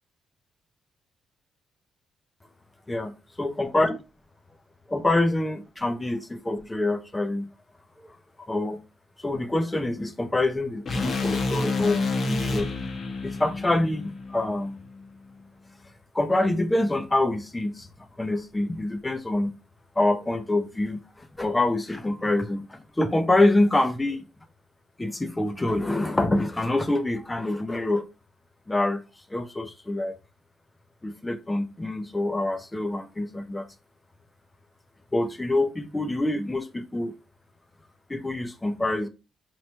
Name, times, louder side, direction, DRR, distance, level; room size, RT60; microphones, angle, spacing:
voice 1, 3.4-4.0 4.9-7.5 8.1-8.2 8.5-8.8 9.2-12.7 13.2-14.8 16.1-17.9 18.2-19.5 20.0-24.2 25.0-28.1 28.7-29.0 29.3-30.2 31.0-33.7 35.1-37.1 38.1-39.1, left 2 dB, 15° left, 0.5 m, -26 dB
sound 1, 10.9-15.0, left 3 dB, 50° left, 0.8 m, -29 dB
3.0 x 2.4 x 4.3 m
cardioid pair, 90°, 0 cm